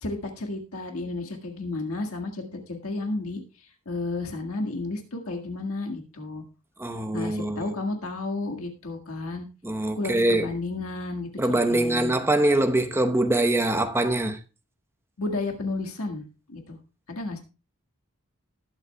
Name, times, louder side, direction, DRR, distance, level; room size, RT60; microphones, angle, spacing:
voice 1, 0.0-3.4 3.9-6.4 7.1-9.5 10.0-11.3 11.7-12.1 15.2-16.8 17.1-17.4, left 2 dB, 70° left, 1.8 m, -32 dB
voice 2, 6.8-7.7 9.6-10.5 11.4-14.4, right 1 dB, 10° right, 0.9 m, -23 dB
19.5 x 8.0 x 2.3 m
head